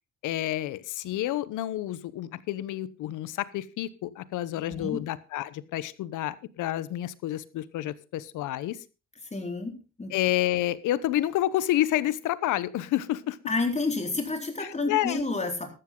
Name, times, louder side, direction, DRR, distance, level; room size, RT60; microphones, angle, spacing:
voice 1, 0.2-8.8 10.1-13.4 14.6-15.2, left 14 dB, 90° left, 17 dB, 1.0 m, -29 dB
voice 2, 4.7-5.0 9.3-10.1 13.5-15.7, left 3 dB, 20° left, 4 dB, 4.1 m, -30 dB
13.5 x 13.0 x 3.9 m, 0.32 s
cardioid pair, 90°, 30 cm